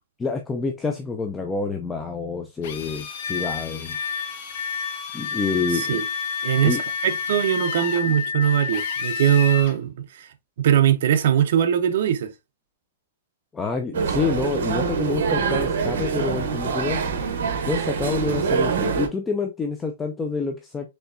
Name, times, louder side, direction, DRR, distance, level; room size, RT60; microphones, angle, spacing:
voice 1, 0.2-4.0 5.1-6.0 6.6-6.8 13.5-17.1 17.7-20.9, left 4 dB, 10° left, 0.3 m, -27 dB
Drill, 2.6-9.8, left 7 dB, 45° left, 0.7 m, -36 dB
sound 1, 3.2-9.6, left 6 dB, 85° left, 0.3 m, -30 dB
voice 2, 6.4-10.3 10.6-12.3, right 10 dB, 55° right, 0.5 m, -21 dB
sound 2, 13.9-19.1, right 6 dB, 70° right, 0.9 m, -25 dB
4.4 x 3.1 x 2.5 m
hypercardioid pair, 170°, 0 cm